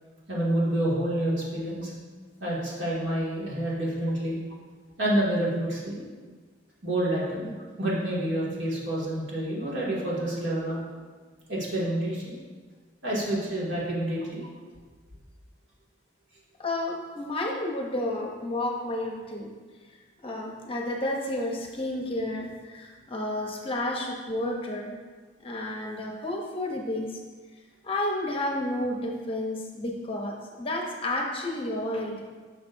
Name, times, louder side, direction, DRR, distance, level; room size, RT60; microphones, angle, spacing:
voice 1, 0.3-1.9 2.4-4.4 5.0-6.0 6.8-7.5 7.8-10.8 11.5-12.3 13.0-14.4, right 1 dB, 70° right, -6 dB, 2.2 m, -28 dB
voice 2, 16.6-19.5 20.2-25.0 25.4-27.2 27.8-32.2, left 1 dB, 30° left, 0 dB, 0.8 m, -31 dB
10.5 x 6.2 x 2.6 m, 1.5 s
head